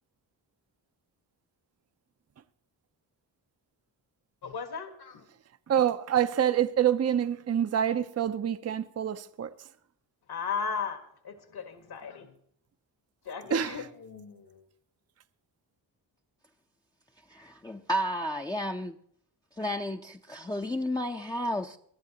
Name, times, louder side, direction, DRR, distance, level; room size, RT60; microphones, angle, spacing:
voice 1, 4.4-5.2 10.3-12.3 13.2-14.6, left 6 dB, 55° left, 1.7 m, -36 dB
voice 2, 5.7-9.7 13.5-13.8, right 9 dB, 35° right, 0.6 m, -27 dB
voice 3, 17.3-19.0 19.6-21.8, equal, 10° left, 0.6 m, -32 dB
21.5 x 11.5 x 2.9 m
cardioid pair, 70°, 44 cm